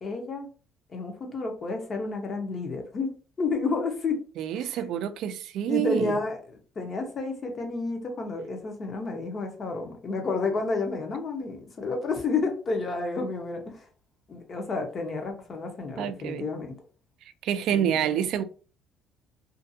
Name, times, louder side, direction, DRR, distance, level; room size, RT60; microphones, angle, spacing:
voice 1, 0.0-0.5 0.9-4.2 4.5-4.8 5.7-13.9 14.3-16.7 17.7-18.3, left 3 dB, 35° left, 0.7 m, -31 dB
voice 2, 4.4-6.2 16.0-16.5 17.4-18.4, right 10 dB, 65° right, 0.3 m, -27 dB
2.5 x 2.4 x 2.6 m
cardioid pair, 130°, 0 cm